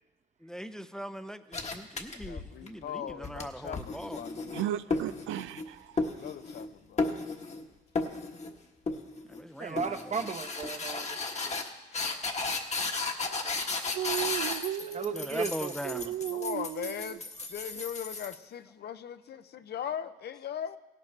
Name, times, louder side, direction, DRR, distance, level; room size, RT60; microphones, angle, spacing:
voice 1, 0.4-4.6 9.3-10.2 12.1-12.3 15.1-16.2, equal, 5° left, 10 dB, 0.6 m, -41 dB
sound 1, 1.5-2.7 3.1-5.7 6.0-6.7 7.0-7.6 7.9-8.5 8.9-9.4 9.8-18.3, left 3 dB, 35° left, 1.3 m, -34 dB
voice 2, 2.1-4.7 6.2-7.3 16.3-17.2 17.5-20.8, left 9 dB, 55° left, 12 dB, 0.6 m, -39 dB
voice 3, 4.5-5.6 13.9-15.3 15.8-17.2, right 12 dB, 85° right, 14 dB, 0.4 m, -34 dB
voice 4, 9.6-11.5 14.9-16.1, right 5 dB, 35° right, 8 dB, 1.0 m, -36 dB
17.0 x 12.0 x 3.3 m, 1.1 s
cardioid pair, 90°, 20 cm